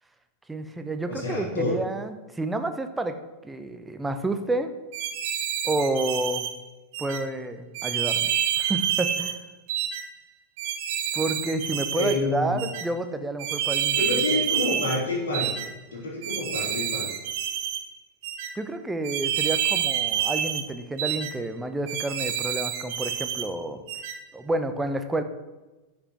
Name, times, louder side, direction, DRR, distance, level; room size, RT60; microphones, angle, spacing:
voice 1, 0.5-4.7 5.6-6.5 7.0-9.4 11.1-14.4 18.6-23.8 24.3-25.2, right 2 dB, 10° right, 8 dB, 0.8 m, -30 dB
voice 2, 1.1-1.8 11.9-12.7 13.9-15.6 15.9-17.1, left 2 dB, 60° left, -5 dB, 3.1 m, -28 dB
sound 1, 4.9-6.5 6.9-7.2 7.7-9.4 9.7-10.0 10.6-12.2 12.6-12.8 13.4-15.0 15.3-15.7 16.2-17.8 18.2-18.5 19.0-20.7 21.0-21.3 21.9-23.5 23.9-24.2, right 10 dB, 50° right, 0.9 m, -28 dB
9.8 x 5.3 x 6.0 m, 1.1 s
figure-of-eight pair, 90°, 0 cm